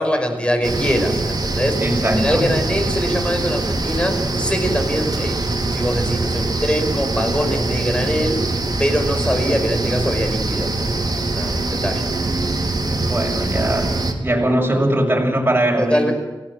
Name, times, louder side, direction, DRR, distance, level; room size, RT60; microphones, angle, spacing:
voice 1, 0.0-1.8 2.0-8.5 8.8-11.1 11.3-12.1 15.8-16.1, equal, 10° left, 5 dB, 5.4 m, -23 dB
sound 1, 0.6-14.1, right 2 dB, 50° right, 3.7 m, -23 dB
voice 2, 1.8-2.6 13.1-13.9 14.2-16.0, right 1 dB, 20° right, 0 dB, 7.0 m, -20 dB
29.5 x 18.5 x 7.7 m, 1.1 s
wide cardioid pair, 110°, 9 cm